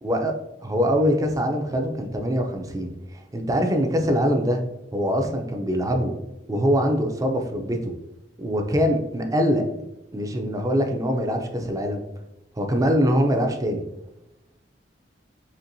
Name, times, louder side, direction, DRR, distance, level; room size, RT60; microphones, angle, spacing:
voice 1, 0.0-0.4 0.6-4.6 4.9-6.1 6.5-7.9 8.4-9.6 10.1-12.0 12.6-13.8, equal, 20° right, 3 dB, 0.5 m, -23 dB
4.3 x 3.0 x 2.6 m, 0.90 s
head